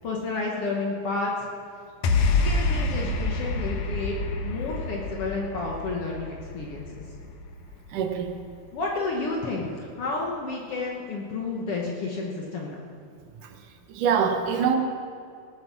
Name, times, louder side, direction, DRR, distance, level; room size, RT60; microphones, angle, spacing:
voice 1, 0.0-1.5 2.4-7.0 8.7-12.8, left 3 dB, 55° left, -2 dB, 2.0 m, -31 dB
sound 1, 2.0-8.5, left 3 dB, 90° left, 2.5 m, -28 dB
voice 2, 7.9-8.4 13.3-14.8, right 7 dB, 85° right, 5 dB, 2.7 m, -26 dB
18.0 x 9.7 x 6.2 m, 2.3 s
omnidirectional pair, 3.5 m